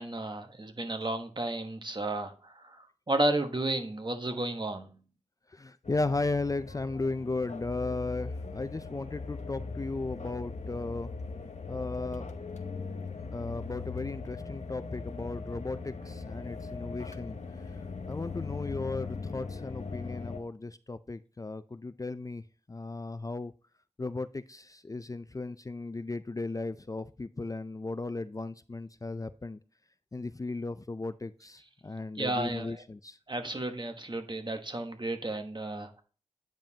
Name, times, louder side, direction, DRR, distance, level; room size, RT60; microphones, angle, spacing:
voice 1, 0.0-5.0 32.2-32.8 33.3-36.0, right 2 dB, 40° right, 7 dB, 1.1 m, -33 dB
voice 2, 5.5-11.1 11.7-12.3 13.3-17.4 18.1-22.4 22.7-23.5 24.0-29.6 30.1-33.2, left 3 dB, 30° left, 12 dB, 0.4 m, -36 dB
sound 1, 5.8-20.4, left 4 dB, 75° left, 0.9 m, -40 dB
8.8 x 5.3 x 2.8 m, 0.38 s
wide cardioid pair, 50°, 12 cm